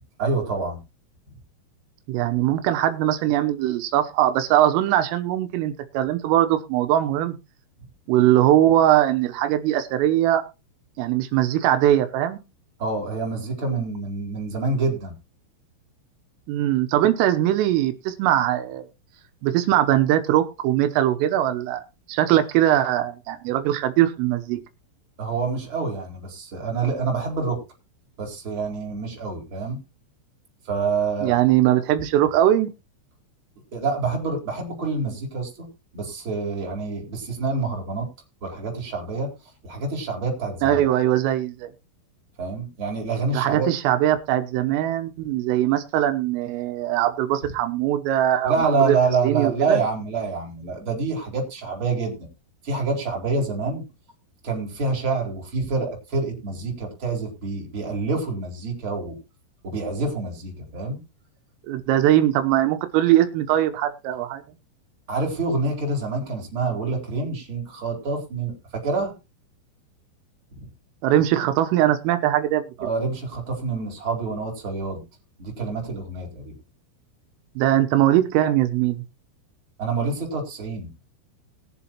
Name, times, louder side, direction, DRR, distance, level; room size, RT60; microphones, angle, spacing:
voice 1, 0.2-0.8 12.8-15.1 25.2-27.6 28.2-29.8 30.7-31.4 33.7-35.7 35.9-38.1 38.4-39.3 39.6-40.8 42.4-43.7 48.4-52.2 52.6-53.8 54.4-59.2 59.6-61.0 65.1-69.1 72.8-75.0 75.4-76.5 79.8-80.9, right 4 dB, 25° right, 1 dB, 4.3 m, -27 dB
voice 2, 2.1-7.4 8.1-10.4 11.0-12.4 16.5-18.9 19.4-21.8 22.1-24.6 31.2-32.7 40.6-41.7 43.3-49.0 49.2-49.8 61.7-64.4 71.0-72.9 77.6-79.0, right 12 dB, 85° right, 9 dB, 3.6 m, -21 dB
21.0 x 7.2 x 3.0 m, 0.27 s
omnidirectional pair, 5.7 m